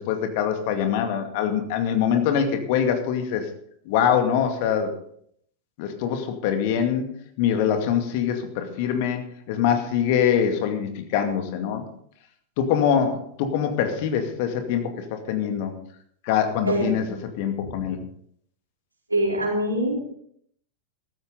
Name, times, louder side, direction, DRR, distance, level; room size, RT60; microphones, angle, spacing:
voice 1, 0.0-3.4 3.9-4.9 5.8-7.1 7.4-11.8 12.6-15.7 16.2-17.0 17.4-18.0, left 8 dB, 50° left, 6 dB, 2.2 m, -24 dB
voice 2, 16.6-17.0 17.6-17.8 19.1-20.0, right 1 dB, 80° right, -2 dB, 4.5 m, -24 dB
15.0 x 13.5 x 3.9 m, 0.66 s
figure-of-eight pair, 90°, 0 cm